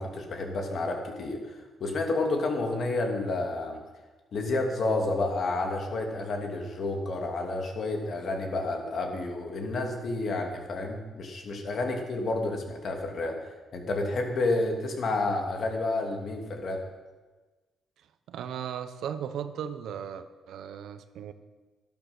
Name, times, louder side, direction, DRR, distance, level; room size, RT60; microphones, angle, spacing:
voice 1, 0.0-3.8 4.3-13.4 13.7-16.8, left 2 dB, 55° left, 2 dB, 2.6 m, -30 dB
voice 2, 18.3-21.3, right 8 dB, 75° right, 11 dB, 0.9 m, -36 dB
12.0 x 12.0 x 6.1 m, 1.3 s
cardioid pair, 90°, 0 cm